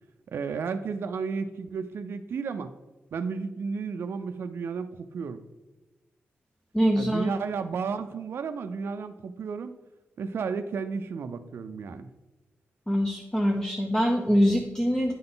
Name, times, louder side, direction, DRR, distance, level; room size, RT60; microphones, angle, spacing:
voice 1, 0.3-2.7 3.1-5.4 7.0-9.7 10.2-12.1, right 5 dB, 65° right, 8 dB, 0.4 m, -33 dB
voice 2, 6.7-7.3 12.9-15.1, equal, 10° left, 2 dB, 0.6 m, -24 dB
9.6 x 3.9 x 3.8 m, 1.1 s
wide cardioid pair, 130°, 4 cm